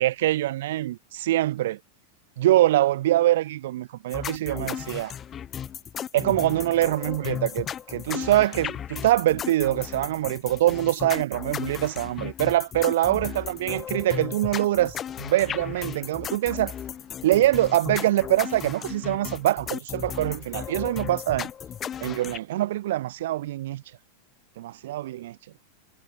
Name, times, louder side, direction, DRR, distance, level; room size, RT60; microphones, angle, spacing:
voice 1, 0.0-1.8 2.4-5.1 6.1-16.7 17.2-21.5 22.0-23.8 24.6-25.4, right 14 dB, 55° right, 0.3 m, -24 dB
sound 1, 4.1-22.4, left 9 dB, 25° left, 0.9 m, -35 dB
figure-of-eight pair, 90°, 0 cm